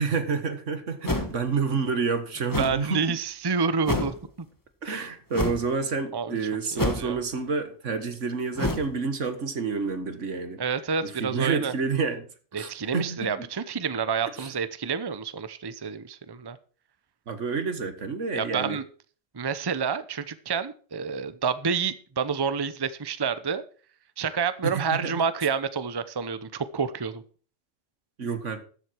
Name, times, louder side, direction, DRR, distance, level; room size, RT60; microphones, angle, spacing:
voice 1, 0.0-3.0 4.8-10.6 11.0-12.3 12.5-13.5 14.4-14.5 17.3-18.8 24.6-25.2 28.2-28.6, right 5 dB, 80° right, 9 dB, 2.0 m, -29 dB
sound 1, 1.0-1.5 2.5-2.8 3.8-4.2 5.3-5.7 6.8-7.2 8.5-8.9, left 2 dB, 15° left, 1.4 m, -28 dB
voice 2, 2.6-4.1 4.9-5.1 6.1-6.4 6.7-7.2 10.6-11.7 12.5-16.6 18.3-18.8 19.3-23.6 24.2-27.2, right 6 dB, 25° right, 14 dB, 0.7 m, -28 dB
13.5 x 7.8 x 4.6 m, 0.41 s
omnidirectional pair, 1.2 m